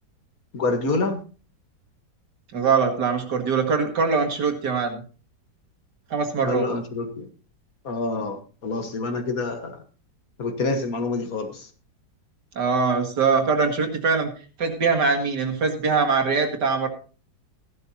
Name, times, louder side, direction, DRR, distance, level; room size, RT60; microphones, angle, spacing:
voice 1, 0.5-1.2 6.4-7.3 7.9-9.8 10.4-11.7, left 3 dB, 55° left, 6 dB, 1.8 m, -27 dB
voice 2, 2.5-5.0 6.1-6.7 12.6-14.3 14.6-16.9, right 5 dB, 70° right, 4 dB, 2.5 m, -22 dB
15.0 x 12.0 x 2.8 m, 0.37 s
omnidirectional pair, 1.9 m